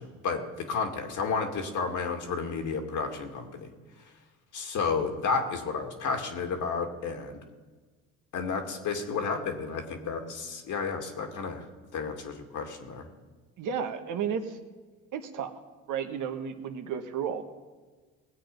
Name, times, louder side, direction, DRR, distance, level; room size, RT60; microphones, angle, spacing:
voice 1, 0.0-3.7 4.5-7.4 8.3-11.6 11.9-13.1, left 5 dB, 55° left, 3 dB, 2.2 m, -32 dB
voice 2, 13.6-14.6 15.1-15.6 15.9-17.4, right 7 dB, 55° right, 6 dB, 1.5 m, -33 dB
19.5 x 8.0 x 5.3 m, 1.4 s
supercardioid pair, 75°, 36 cm